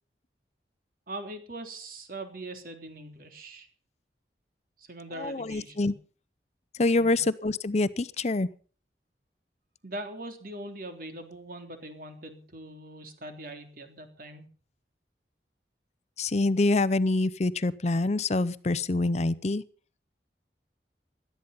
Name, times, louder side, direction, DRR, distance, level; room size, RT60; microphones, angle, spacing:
voice 1, 1.1-3.7 4.8-5.9 7.0-7.2 9.8-14.5, right 1 dB, 55° right, 6 dB, 3.3 m, -41 dB
voice 2, 5.1-5.9 6.7-8.5 16.2-19.6, left 2 dB, 40° left, 16 dB, 0.6 m, -26 dB
17.5 x 12.5 x 5.5 m, 0.41 s
head